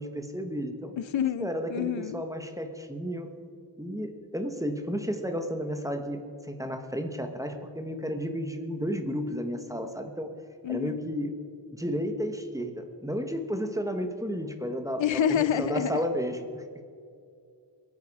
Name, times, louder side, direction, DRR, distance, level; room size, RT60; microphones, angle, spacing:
voice 1, 0.0-0.9 1.4-3.3 3.8-10.3 10.7-11.3 11.7-16.6, equal, 5° right, 6 dB, 1.4 m, -32 dB
voice 2, 1.0-2.2 10.6-11.0 15.0-16.0, left 9 dB, 80° left, 16 dB, 0.6 m, -28 dB
23.0 x 9.6 x 4.9 m, 2.4 s
wide cardioid pair, 80°, 45 cm